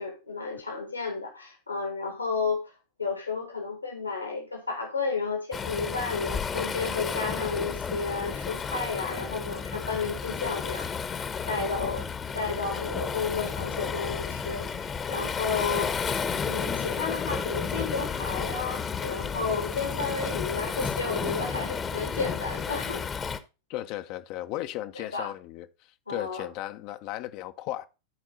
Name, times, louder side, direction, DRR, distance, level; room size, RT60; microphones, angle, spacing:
voice 1, 0.0-2.6 3.0-10.9 11.5-12.1 12.3-23.0 25.0-25.3 26.1-26.5, left 4 dB, 80° left, 2.4 m, -32 dB
Waves surf, 5.5-23.4, left 6 dB, 20° left, 1.2 m, -32 dB
voice 2, 23.7-25.7 26.1-27.9, left 14 dB, 45° left, 0.9 m, -35 dB
14.0 x 4.7 x 4.0 m
figure-of-eight pair, 90°, 0 cm